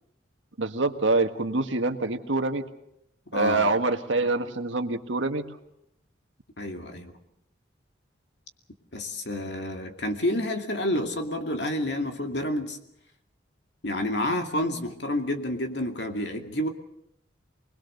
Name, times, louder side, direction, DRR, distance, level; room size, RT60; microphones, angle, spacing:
voice 1, 0.6-2.6 3.3-5.5, right 3 dB, 85° right, 6 dB, 1.7 m, -25 dB
voice 2, 3.3-3.7 6.6-7.1 8.9-12.8 13.8-16.7, left 1 dB, 65° left, 4 dB, 2.4 m, -29 dB
25.0 x 21.0 x 6.7 m, 0.79 s
head